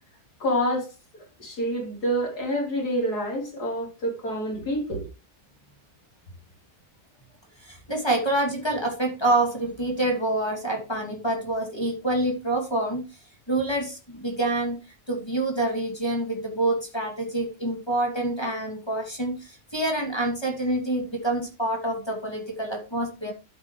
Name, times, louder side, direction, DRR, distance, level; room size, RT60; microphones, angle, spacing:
voice 1, 0.4-0.9 1.4-5.0, equal, 70° left, 4.6 m, -27 dB
voice 2, 7.6-13.1 13.5-14.8 15.1-23.3, right 1 dB, 15° left, 2.7 m, -27 dB
13.0 x 8.1 x 3.2 m
omnidirectional pair, 1.7 m